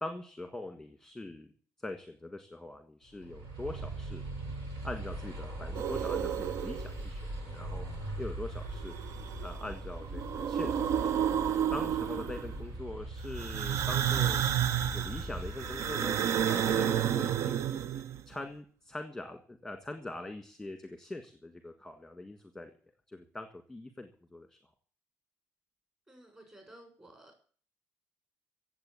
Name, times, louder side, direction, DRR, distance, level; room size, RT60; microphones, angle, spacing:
voice 1, 0.0-1.5 1.8-4.2 4.8-7.8 8.2-8.9 9.4-11.1 11.7-14.4 14.9-16.2 16.4-17.6 18.3-22.7 23.1-24.6, left 2 dB, 5° left, 6 dB, 1.6 m, -42 dB
sound 1, 3.1-16.6, right 2 dB, 85° right, 7.1 m, -41 dB
sound 2, 5.7-7.0 8.7-9.7 10.0-12.6 13.3-18.2, right 9 dB, 60° right, 0.6 m, -31 dB
voice 2, 26.1-27.4, right 1 dB, 15° right, 3 dB, 6.8 m, -54 dB
16.5 x 7.8 x 8.3 m, 0.44 s
cardioid pair, 165°, 5 cm